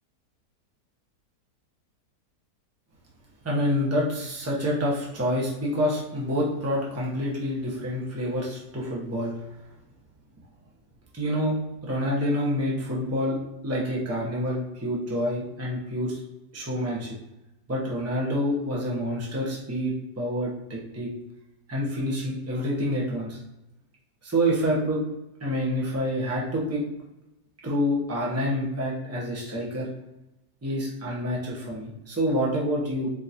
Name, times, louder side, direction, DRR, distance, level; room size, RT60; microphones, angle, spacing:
voice 1, 3.4-9.3 11.1-11.5 11.8-13.4 13.6-16.2 16.5-17.1 17.7-21.1 21.7-23.4 24.2-25.0 25.4-26.8 27.6-29.9 30.6-33.1, equal, 15° right, -4 dB, 0.6 m, -27 dB
4.5 x 2.9 x 2.6 m, 0.94 s
omnidirectional pair, 1.7 m